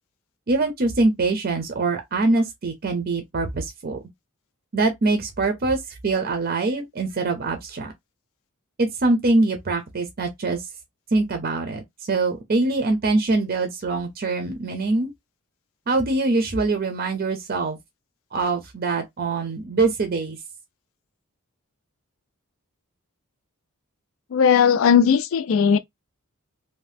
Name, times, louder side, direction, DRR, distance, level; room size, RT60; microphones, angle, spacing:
voice 1, 0.5-4.0 4.7-7.9 8.8-10.7 11.1-15.1 15.9-17.8 18.3-20.4, right 3 dB, 45° right, 0.5 m, -23 dB
voice 2, 24.3-25.8, left 7 dB, 65° left, 0.3 m, -17 dB
2.7 x 2.1 x 3.3 m
head